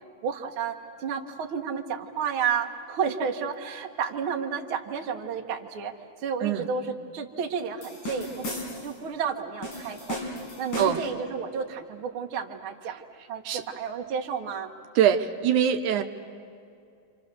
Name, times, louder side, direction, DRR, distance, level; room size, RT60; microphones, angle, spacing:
voice 1, 0.2-5.9 6.2-8.5 8.8-10.2 10.6-13.0 13.3-14.7 15.9-16.0, right 6 dB, 50° right, 3 dB, 1.9 m, -31 dB
sound 1, 7.8-9.0 9.6-11.2, left 1 dB, 85° left, 6.1 m, -35 dB
voice 2, 15.0-16.0, right 9 dB, 80° right, 7 dB, 2.3 m, -23 dB
29.5 x 27.0 x 6.8 m, 2.5 s
omnidirectional pair, 3.6 m